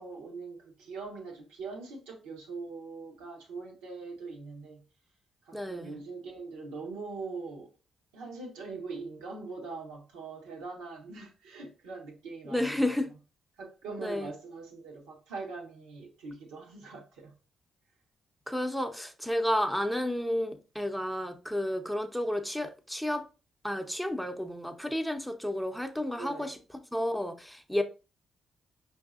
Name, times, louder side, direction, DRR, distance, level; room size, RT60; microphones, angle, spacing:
voice 1, 0.0-4.8 5.5-7.7 8.1-13.0 13.6-17.3 26.2-26.5, right 4 dB, 80° right, 1.0 m, -42 dB
voice 2, 5.5-5.9 12.4-13.1 14.0-14.3 18.5-23.2 23.6-26.6 26.9-27.8, left 1 dB, ahead, 0.7 m, -31 dB
5.3 x 2.7 x 2.4 m
hypercardioid pair, 40°, 0 cm